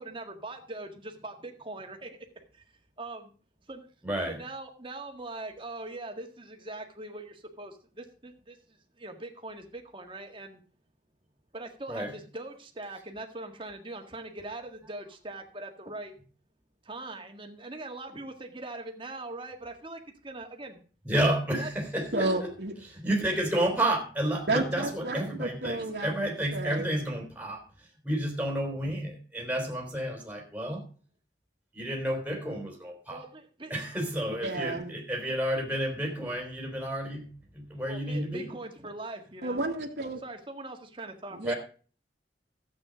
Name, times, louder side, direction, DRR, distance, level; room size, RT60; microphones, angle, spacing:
voice 1, 0.0-2.3 2.5-2.7 3.0-3.3 3.7-3.9 4.3-10.6 11.5-16.2 16.8-20.8 21.6-21.7 33.1-33.7 37.8-39.6 40.2-41.4, right 2 dB, 25° right, 4 dB, 1.8 m, -41 dB
voice 2, 4.0-4.4 11.9-12.1 21.0-22.5 22.9-30.8 31.7-33.2 33.7-38.5 41.4-41.5, right 1 dB, 10° right, 1 dB, 3.5 m, -31 dB
voice 3, 22.1-22.7 24.5-26.9 34.4-34.9 39.4-40.2 41.3-41.5, right 2 dB, 60° right, -2 dB, 1.8 m, -31 dB
13.5 x 8.5 x 5.1 m, 0.39 s
head